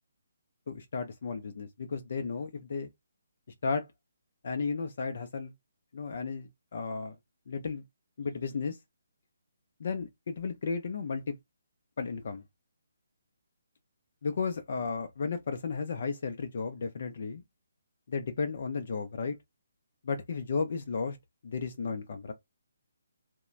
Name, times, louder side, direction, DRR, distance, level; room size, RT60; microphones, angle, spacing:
voice 1, 0.7-2.9 3.6-3.9 4.4-5.5 5.9-7.2 7.5-7.8 8.2-8.8 9.8-11.4 12.0-12.4 14.2-17.4 18.1-19.4 20.0-21.2 21.4-22.3, left 5 dB, 50° left, 0.4 m, -34 dB
3.0 x 2.1 x 2.4 m
hypercardioid pair, 170°, 0 cm